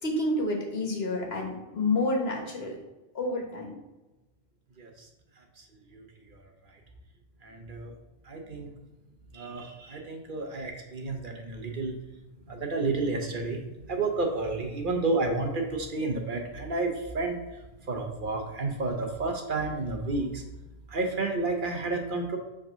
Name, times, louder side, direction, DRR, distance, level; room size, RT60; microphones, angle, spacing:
voice 1, 0.0-2.8 3.1-3.7, left 2 dB, 70° left, 1 dB, 1.5 m, -29 dB
voice 2, 4.8-5.1 5.4-5.6 5.9-6.8 7.4-7.9 8.2-8.7 9.3-12.0 12.5-20.4 20.9-22.4, right 3 dB, 55° right, 3 dB, 1.0 m, -31 dB
5.3 x 3.6 x 5.5 m, 1.1 s
omnidirectional pair, 1.1 m